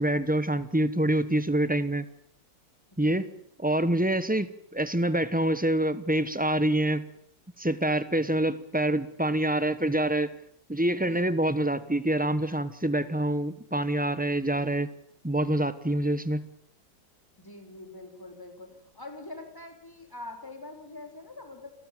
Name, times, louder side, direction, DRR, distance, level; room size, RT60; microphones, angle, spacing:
voice 1, 0.0-2.1 3.0-3.2 3.6-7.0 7.6-10.3 10.7-14.9 15.2-16.4, right 1 dB, 10° right, 13 dB, 0.5 m, -26 dB
voice 2, 2.9-3.4 11.0-11.2 17.4-21.8, left 2 dB, 10° left, 4 dB, 3.7 m, -44 dB
29.0 x 13.5 x 9.0 m, 0.71 s
omnidirectional pair, 2.0 m